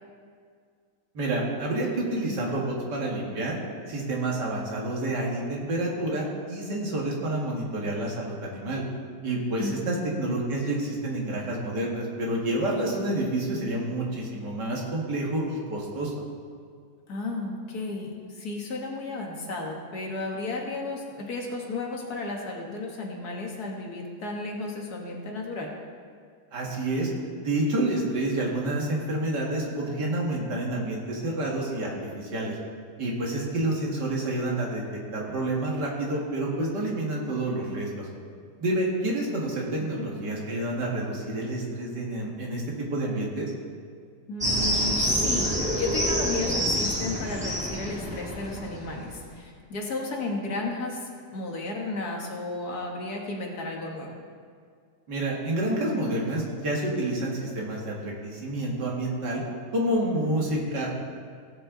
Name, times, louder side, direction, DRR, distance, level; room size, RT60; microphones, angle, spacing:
voice 1, 1.1-3.6 3.9-8.8 9.2-16.1 26.5-27.1 27.4-32.6 33.0-34.8 35.1-38.1 38.6-43.5 55.1-59.4 59.7-60.9, right 1 dB, 75° right, -3 dB, 2.5 m, -29 dB
voice 2, 9.6-10.2 17.1-25.8 40.0-40.1 44.3-54.1, left 2 dB, 65° left, 0 dB, 2.0 m, -33 dB
sound 1, 44.4-49.2, equal, 5° right, 1.5 m, -27 dB
16.5 x 7.7 x 3.9 m, 2.1 s
omnidirectional pair, 1.9 m